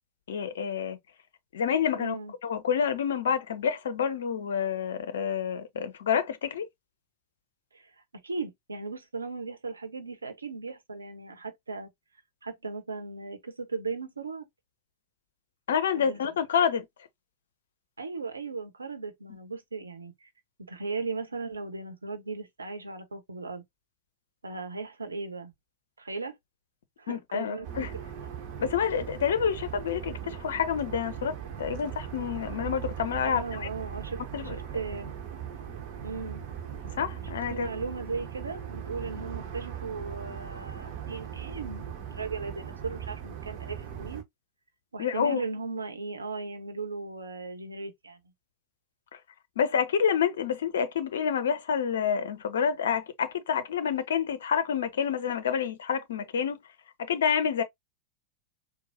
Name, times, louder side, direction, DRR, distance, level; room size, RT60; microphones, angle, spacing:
voice 1, 0.3-1.0 1.5-2.2 2.4-6.7 15.7-16.8 27.1-27.9 28.6-33.4 34.3-34.5 37.0-37.7 45.0-45.4 49.6-56.6 57.1-57.6, left 7 dB, 65° left, 0.7 m, -28 dB
voice 2, 1.9-2.3 7.7-7.9 8.2-11.9 12.4-14.4 15.9-16.2 18.0-20.3 20.7-23.6 24.4-25.5 26.0-26.4 27.0-27.7 27.9-28.1 33.2-35.2 36.0-36.4 37.5-44.2 44.9-48.2, right 4 dB, 75° right, 0.9 m, -37 dB
sound 1, 27.6-44.2, right 9 dB, 45° right, 1.0 m, -39 dB
4.5 x 2.3 x 2.6 m
figure-of-eight pair, 90°, 0 cm